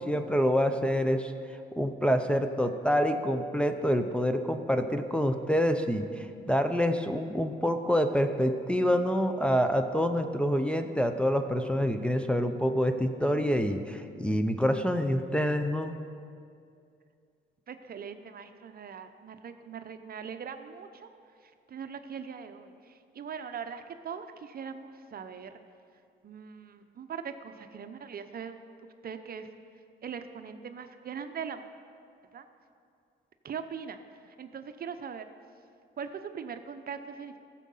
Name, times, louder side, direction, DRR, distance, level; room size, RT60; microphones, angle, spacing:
voice 1, 0.0-1.3 1.7-16.0, equal, 5° left, 5 dB, 0.6 m, -27 dB
voice 2, 17.7-21.1 21.4-25.6 26.2-28.6 29.0-29.5 30.0-31.6 32.3-32.5 33.4-35.3 36.0-37.4, right 7 dB, 50° right, 8 dB, 0.8 m, -41 dB
14.5 x 7.5 x 5.5 m, 2.4 s
cardioid pair, 90°, 20 cm